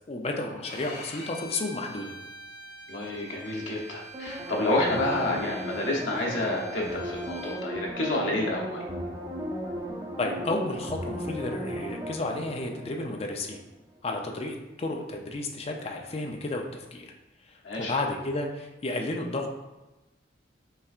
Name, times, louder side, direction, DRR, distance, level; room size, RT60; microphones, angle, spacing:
voice 1, 0.1-2.1 10.2-13.6 14.0-17.1 17.5-19.5, left 2 dB, 35° left, 2 dB, 0.5 m, -32 dB
Bowed string instrument, 0.6-7.6, equal, 55° left, 1.0 m, -45 dB
voice 2, 2.9-8.8 17.6-17.9, left 2 dB, 85° left, -2 dB, 0.8 m, -29 dB
sound 1, 4.1-13.5 13.9-14.0, equal, 20° right, 0.5 m, -36 dB
5.6 x 3.4 x 2.4 m, 1.1 s
head